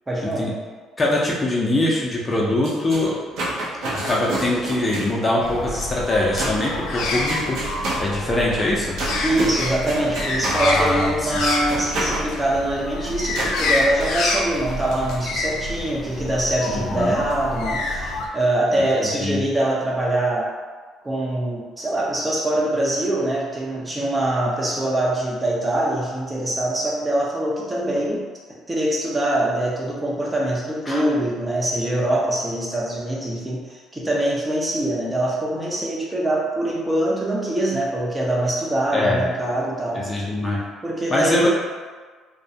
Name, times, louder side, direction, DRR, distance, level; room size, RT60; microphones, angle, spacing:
voice 1, 0.1-0.5 9.2-20.5 21.0-28.3 28.7-40.1 40.8-41.5, right 1 dB, 20° right, -4 dB, 0.6 m, -23 dB
voice 2, 1.0-3.2 3.9-7.6 8.0-9.0 10.5-11.4 16.7-17.2 19.0-19.4 30.9-31.0 38.9-39.2 39.9-40.6 41.1-41.5, left 1 dB, 30° left, -4 dB, 0.6 m, -23 dB
sound 1, 2.3-12.3 13.3-14.1, right 2 dB, 70° right, 0.6 m, -31 dB
sound 2, 5.4-18.3, left 2 dB, 70° left, 0.3 m, -27 dB
2.3 x 2.1 x 2.7 m, 1.4 s
supercardioid pair, 75°, 0 cm